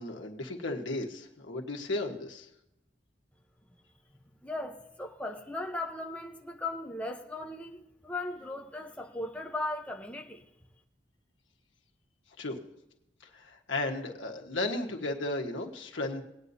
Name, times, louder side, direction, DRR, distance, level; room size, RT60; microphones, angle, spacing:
voice 1, 0.0-2.5 12.4-12.6 13.3-16.2, left 2 dB, 90° left, 1.4 m, -34 dB
voice 2, 4.4-10.4, left 2 dB, 5° left, 0.8 m, -37 dB
19.0 x 9.5 x 2.8 m
head